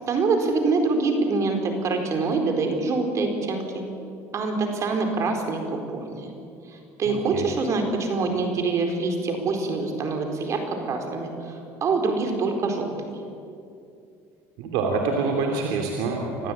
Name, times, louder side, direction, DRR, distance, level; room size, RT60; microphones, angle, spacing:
voice 1, 0.1-3.8 4.3-6.3 6.7-13.2, right 3 dB, 45° right, 4 dB, 4.5 m, -25 dB
voice 2, 7.1-7.4 14.6-16.5, right 4 dB, 75° right, 2 dB, 2.9 m, -26 dB
26.0 x 15.0 x 8.9 m, 2.5 s
supercardioid pair, 95°, 7 cm